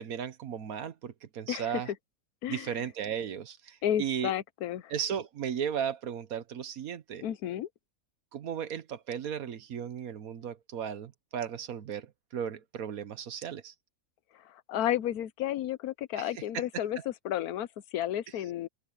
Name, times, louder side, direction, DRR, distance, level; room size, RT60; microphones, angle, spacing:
voice 1, 0.0-1.9 2.5-4.3 4.9-7.2 8.3-13.7 16.2-16.6 17.0-17.1, right 8 dB, 75° right, 1.5 m, -36 dB
voice 2, 3.8-4.9 7.2-7.7 14.7-17.0 17.2-18.7, left 11 dB, 85° left, 1.3 m, -32 dB
omnidirectional pair, 1.5 m